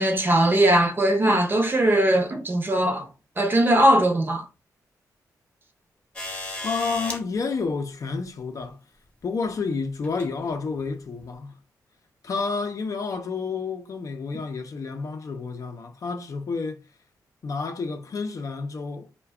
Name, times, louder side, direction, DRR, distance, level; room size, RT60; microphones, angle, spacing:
voice 1, 0.0-3.1 3.4-4.4, right 1 dB, 30° right, 0.7 m, -20 dB
sound 1, 6.2-7.2 8.6-8.7 10.0-10.3 11.2-11.3, left 2 dB, 20° left, 0.8 m, -34 dB
voice 2, 6.6-8.8 9.2-11.5 12.2-16.9 17.4-19.1, left 4 dB, 55° left, 0.5 m, -30 dB
2.3 x 2.2 x 3.4 m
cardioid pair, 85°, 7 cm